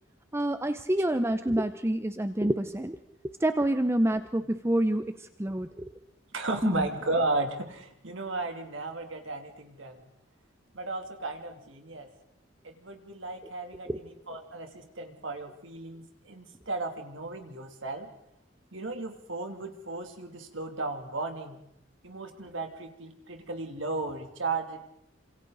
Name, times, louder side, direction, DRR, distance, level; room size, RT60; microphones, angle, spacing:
voice 1, 0.3-3.0 3.4-5.9 6.6-6.9 13.9-14.0, right 1 dB, 15° right, 9 dB, 0.7 m, -27 dB
voice 2, 6.3-10.1 10.7-12.1 12.6-18.1 18.7-21.6 22.0-24.8, right 2 dB, 85° right, 4 dB, 3.0 m, -35 dB
29.0 x 26.5 x 4.1 m, 0.78 s
head